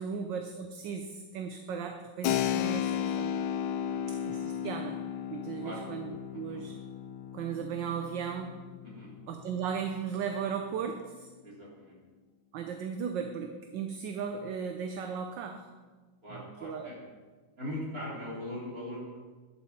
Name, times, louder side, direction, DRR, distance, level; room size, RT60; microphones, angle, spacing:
voice 1, 0.0-3.3 4.1-5.0 5.3-6.8 7.3-8.5 9.3-11.3 12.5-15.7 16.3-16.9, right 7 dB, 75° right, 5 dB, 1.5 m, -36 dB
Keyboard (musical), 2.2-10.6, left 10 dB, 90° left, 1.5 m, -35 dB
voice 2, 11.4-12.0 16.2-17.0 17.6-19.2, left 1 dB, 45° right, -5 dB, 4.1 m, -40 dB
12.0 x 11.5 x 4.3 m, 1.3 s
omnidirectional pair, 2.1 m